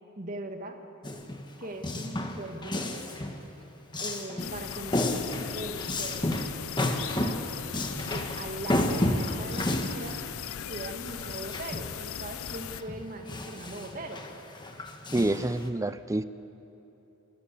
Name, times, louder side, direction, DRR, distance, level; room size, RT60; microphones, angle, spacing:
voice 1, 0.2-0.8 1.6-3.0 4.0-6.3 6.8-7.5 8.0-10.2 10.7-14.4, right 1 dB, 40° right, 4 dB, 1.7 m, -40 dB
Male speech man speaking, 1.0-3.4 3.9-12.0 12.5-15.7, left 1 dB, 20° left, 1.3 m, -32 dB
sound 1, 4.4-12.8, left 9 dB, 75° left, 0.6 m, -38 dB
voice 2, 15.1-16.2, right 1 dB, 15° right, 13 dB, 0.5 m, -27 dB
28.5 x 13.5 x 8.4 m, 3.0 s
head